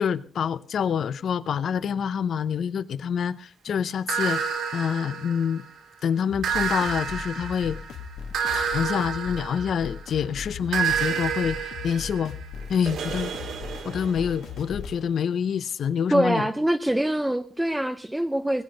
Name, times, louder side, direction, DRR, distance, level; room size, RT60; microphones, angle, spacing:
voice 1, 0.0-4.4 4.7-5.6 6.0-7.8 8.5-12.3 12.7-13.3 13.8-16.5, left 7 dB, 55° left, 0.7 m, -26 dB
sound 1, 4.1-5.8 6.4-10.1 10.7-14.4, right 7 dB, 80° right, 3.0 m, -30 dB
sound 2, 6.3-15.0, left 6 dB, 85° left, 2.2 m, -38 dB
voice 2, 16.1-18.6, right 1 dB, 5° right, 0.6 m, -24 dB
21.0 x 9.8 x 5.1 m
wide cardioid pair, 170°, 0 cm